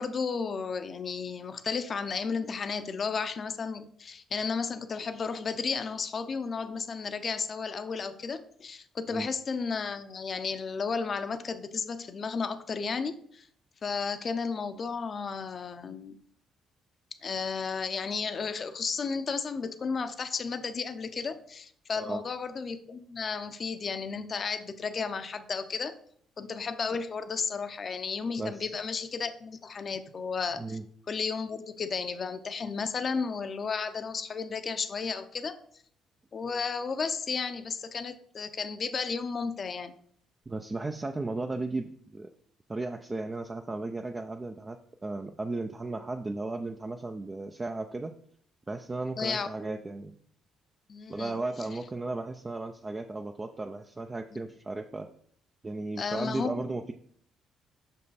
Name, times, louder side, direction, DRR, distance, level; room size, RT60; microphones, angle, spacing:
voice 1, 0.0-13.5 13.8-16.2 17.2-25.9 26.4-30.8 31.1-35.6 36.3-39.9 49.2-49.5 50.9-51.4 54.3-54.4 56.0-56.7, left 5 dB, 45° left, 11 dB, 0.6 m, -33 dB
voice 2, 21.9-22.2 28.4-28.7 30.6-30.8 40.5-42.3 42.7-48.1 48.7-50.1 51.1-55.1 55.6-56.9, right 2 dB, 25° right, 6 dB, 0.4 m, -35 dB
5.5 x 5.4 x 4.0 m, 0.62 s
supercardioid pair, 70°, 0 cm